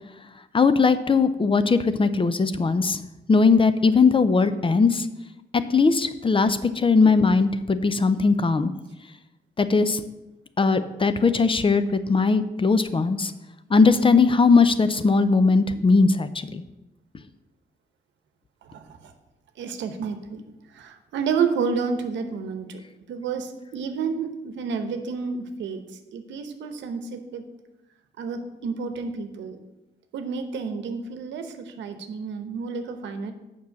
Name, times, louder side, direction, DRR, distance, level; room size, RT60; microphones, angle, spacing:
voice 1, 0.5-3.0 3.3-5.1 5.5-8.7 9.6-10.0 10.6-13.3 13.7-16.6, left 4 dB, 30° left, 12 dB, 0.6 m, -19 dB
voice 2, 19.6-20.4 20.7-22.8 23.1-25.8 26.1-27.4 28.2-29.6 30.1-33.3, right 5 dB, 90° right, 8 dB, 0.9 m, -30 dB
7.2 x 5.5 x 6.3 m, 0.99 s
cardioid pair, 75°, 19 cm